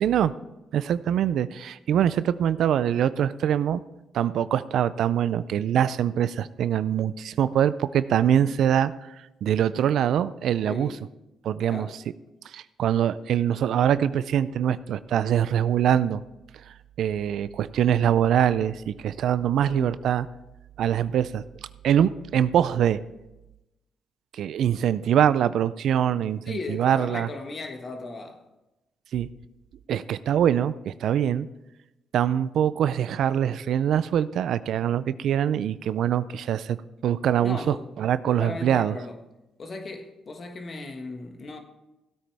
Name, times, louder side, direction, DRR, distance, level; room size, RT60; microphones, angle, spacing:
voice 1, 0.0-0.3 0.7-3.8 4.1-8.9 9.4-10.9 11.4-11.9 12.5-16.2 17.0-20.3 20.8-21.4 21.8-23.0 24.3-27.3 29.1-29.3 29.9-31.5 32.1-36.8 37.0-38.9, right 9 dB, 70° right, 0.4 m, -23 dB
voice 2, 10.6-11.1 11.7-12.0 19.7-20.0 26.4-28.4 37.4-37.9 38.2-39.2 39.6-41.6, left 3 dB, 40° left, 1.6 m, -36 dB
16.5 x 8.8 x 3.5 m
cardioid pair, 90°, 0 cm